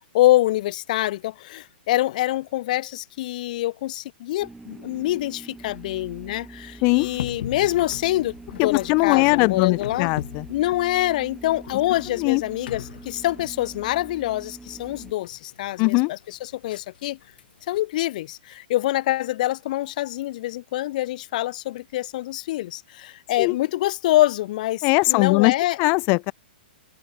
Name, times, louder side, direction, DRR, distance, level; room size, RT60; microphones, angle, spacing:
voice 1, 0.1-10.1 10.5-17.2 17.7-25.8, left 15 dB, 50° left, 1.0 m, -25 dB
sound 1, 4.4-15.1, right 3 dB, 5° right, 5.1 m, -43 dB
sound 2, 7.0-17.8, left 10 dB, 65° left, 5.7 m, -40 dB
voice 2, 8.6-10.4 12.2-12.4 15.8-16.1 23.4-23.6 24.8-26.3, left 31 dB, 35° left, 2.5 m, -20 dB
hypercardioid pair, 145°, 5 cm